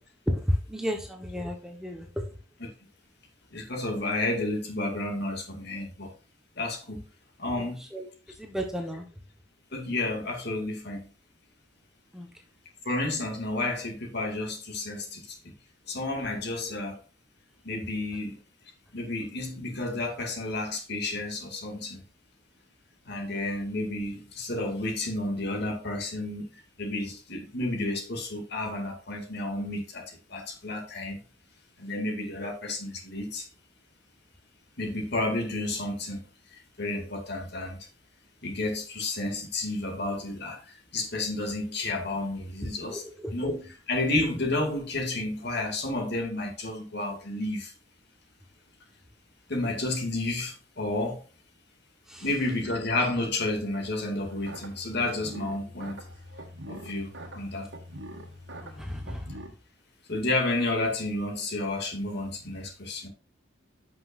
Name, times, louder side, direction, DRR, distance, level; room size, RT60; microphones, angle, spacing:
voice 1, 0.3-2.3 7.5-9.1 12.1-12.4 42.9-43.3 52.1-52.3 58.6-59.4, equal, ahead, 1.1 m, -33 dB
voice 2, 3.5-6.1 6.6-7.0 7.4-7.8 9.7-11.1 12.8-15.4 15.9-17.0 17.6-18.4 18.9-22.0 23.1-31.2 31.8-33.5 34.8-36.2 36.5-37.9 38.4-43.0 43.3-47.7 49.5-51.2 52.2-56.0 56.7-57.7 60.1-63.1, left 2 dB, 55° left, 2.2 m, -31 dB
sound 1, 54.2-59.5, equal, 60° right, 1.8 m, -43 dB
10.5 x 6.1 x 2.5 m
head